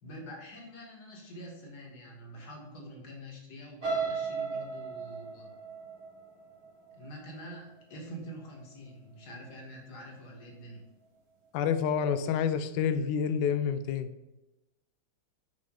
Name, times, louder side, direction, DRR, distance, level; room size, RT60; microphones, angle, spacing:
voice 1, 0.0-5.5 6.9-10.8, equal, 55° left, -1 dB, 1.9 m, -46 dB
sound 1, 3.8-7.8 8.3-8.6 8.9-9.0, right 5 dB, 85° right, 2.6 m, -36 dB
voice 2, 11.5-14.1, left 7 dB, 75° left, 11 dB, 1.1 m, -28 dB
6.0 x 4.8 x 3.7 m, 1.0 s
omnidirectional pair, 2.2 m